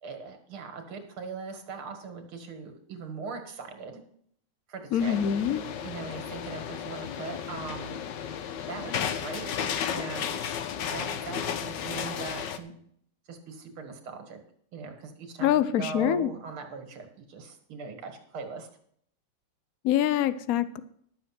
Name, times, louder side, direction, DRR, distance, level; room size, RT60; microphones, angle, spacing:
voice 1, 0.0-4.0 4.7-5.2 5.8-8.0 8.7-9.5 9.9-12.8 13.3-14.4 14.7-18.7, right 4 dB, 75° right, 5 dB, 2.7 m, -40 dB
voice 2, 4.9-5.6 15.4-16.3 19.8-20.8, left 10 dB, 85° left, 13 dB, 0.7 m, -25 dB
sound 1, 5.0-12.6, left 8 dB, 65° left, 1.4 m, -34 dB
12.0 x 7.3 x 5.9 m, 0.65 s
omnidirectional pair, 2.3 m